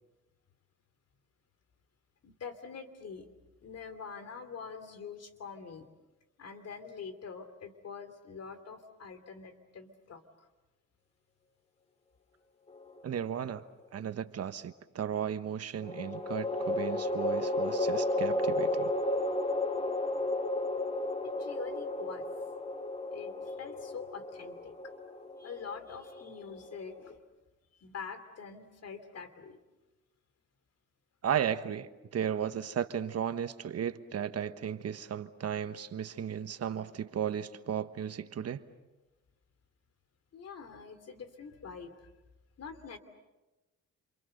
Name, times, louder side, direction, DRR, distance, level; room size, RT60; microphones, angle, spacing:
voice 1, 2.2-3.3 3.6-5.9 6.4-10.5 21.4-22.2 23.1-24.7 25.4-27.2 27.8-29.6 40.3-42.1 42.6-43.0, left 6 dB, 55° left, 10 dB, 3.0 m, -45 dB
sound 1, 12.7-13.5 15.8-27.1, left 1 dB, 20° left, 2.1 m, -33 dB
voice 2, 13.0-13.6 13.9-18.9 31.2-38.6, right 8 dB, 55° right, 11 dB, 1.3 m, -35 dB
28.0 x 27.5 x 6.6 m, 1.1 s
cardioid pair, 90°, 30 cm